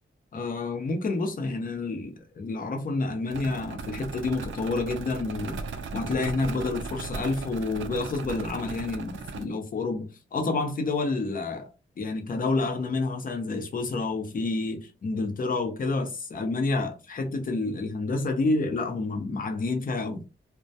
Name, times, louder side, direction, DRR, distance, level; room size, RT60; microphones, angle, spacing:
voice 1, 0.3-5.6 5.9-11.7 12.0-20.2, left 3 dB, 45° left, 0.6 m, -29 dB
sound 1, 3.3-9.4, right 4 dB, 80° right, 0.4 m, -37 dB
2.2 x 2.1 x 2.6 m
cardioid pair, 75°, 20 cm